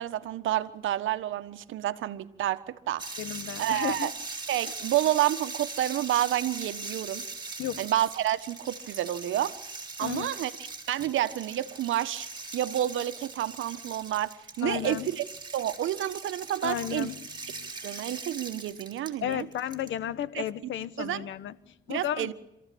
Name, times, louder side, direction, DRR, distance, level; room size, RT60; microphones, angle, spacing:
voice 1, 0.0-3.1 3.6-4.1 4.5-7.2 7.8-9.6 10.0-10.5 10.9-12.3 12.5-15.2 15.5-17.1 17.8-19.5 20.3-20.4 21.0-21.2 21.9-22.3, right 13 dB, 80° right, 1.4 m, -29 dB
sound 1, 3.0-19.9, right 3 dB, 20° right, 5.0 m, -41 dB
voice 2, 3.2-4.1 7.6-7.9 10.0-10.3 14.6-15.1 16.6-17.2 17.5-17.7 19.2-22.3, left 11 dB, 75° left, 1.1 m, -33 dB
26.5 x 15.0 x 8.6 m
cardioid pair, 90°, 20 cm